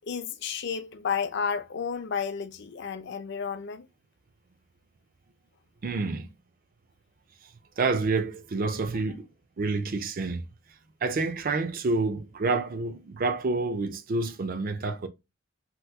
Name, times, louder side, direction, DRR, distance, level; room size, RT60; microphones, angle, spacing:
voice 1, 0.1-3.9, left 6 dB, 60° left, 0.5 m, -32 dB
voice 2, 5.8-6.3 7.8-9.3 9.6-10.4 11.0-15.1, right 3 dB, 50° right, 0.5 m, -28 dB
3.5 x 2.9 x 2.2 m
head